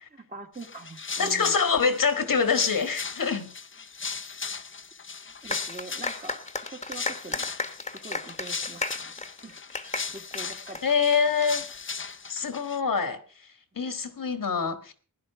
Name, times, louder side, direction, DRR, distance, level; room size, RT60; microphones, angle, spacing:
voice 1, 0.1-1.6 5.4-6.4 6.7-7.6 8.0-9.1 9.4-9.6 10.1-10.8, right 3 dB, 25° right, 1.6 m, -43 dB
sound 1, 0.5-12.8, left 5 dB, 35° left, 0.7 m, -38 dB
voice 2, 1.2-3.5 10.8-11.6 12.3-13.2 13.7-14.9, left 5 dB, 80° left, 1.7 m, -25 dB
sound 2, 5.5-11.5, left 3 dB, 20° left, 1.2 m, -34 dB
16.5 x 10.5 x 4.6 m
wide cardioid pair, 90°, 33 cm